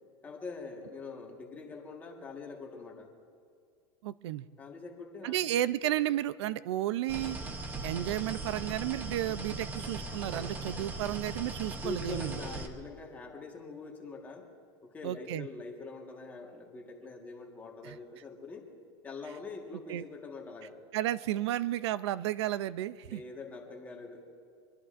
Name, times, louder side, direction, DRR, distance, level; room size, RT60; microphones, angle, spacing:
voice 1, 0.2-3.1 4.6-5.5 11.8-14.5 14.8-18.7 19.0-20.8 23.1-24.3, left 3 dB, 10° left, 0 dB, 1.5 m, -44 dB
voice 2, 4.0-4.5 5.2-7.4 7.8-12.4 15.0-15.5 17.8-18.0 19.9-20.0 20.9-23.2, right 13 dB, 85° right, 16 dB, 0.5 m, -32 dB
sound 1, 7.1-12.7, right 2 dB, 15° right, 0.8 m, -39 dB
24.5 x 22.5 x 2.5 m, 2.1 s
supercardioid pair, 175°, 14 cm